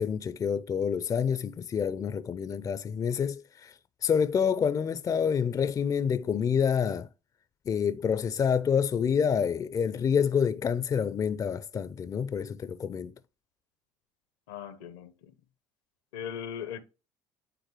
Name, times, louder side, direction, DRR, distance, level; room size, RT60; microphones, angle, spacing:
voice 1, 0.0-3.7 4.0-7.1 7.7-13.1, left 7 dB, 35° left, 0.5 m, -27 dB
voice 2, 14.5-15.4 16.1-16.8, left 8 dB, 75° left, 0.8 m, -39 dB
9.3 x 3.8 x 3.0 m
hypercardioid pair, 65°, 11 cm